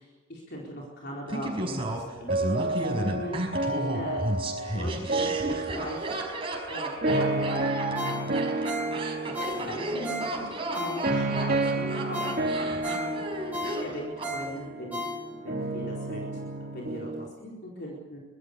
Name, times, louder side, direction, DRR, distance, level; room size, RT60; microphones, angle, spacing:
voice 1, 0.0-4.2 4.7-6.2 6.7-8.6 9.2-12.4 12.8-16.2 16.6-18.2, equal, 50° left, -3 dB, 4.4 m, -39 dB
Laughter, 1.3-14.3 14.6-14.7, right 1 dB, 25° right, 5.2 m, -33 dB
sound 1, 2.3-17.3, right 2 dB, 45° right, 2.5 m, -31 dB
Ringtone, 7.9-11.4 11.8-11.9 12.1-15.6 16.0-16.1, equal, 10° right, 6.8 m, -35 dB
25.0 x 21.0 x 6.8 m, 1.2 s
head